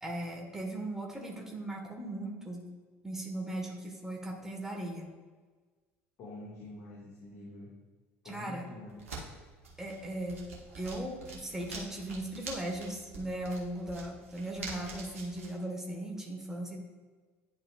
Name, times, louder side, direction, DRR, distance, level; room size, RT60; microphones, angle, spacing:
voice 1, 0.0-2.6 3.0-5.1 8.2-8.7 9.8-10.4 10.8-16.8, right 1 dB, 5° right, 0 dB, 1.4 m, -38 dB
voice 2, 6.2-7.7 8.2-9.0, left 1 dB, 40° left, -7 dB, 1.8 m, -46 dB
sound 1, 8.9-15.5, right 3 dB, 75° right, 1.3 m, -46 dB
10.0 x 5.0 x 2.4 m, 1.4 s
figure-of-eight pair, 65°, 7 cm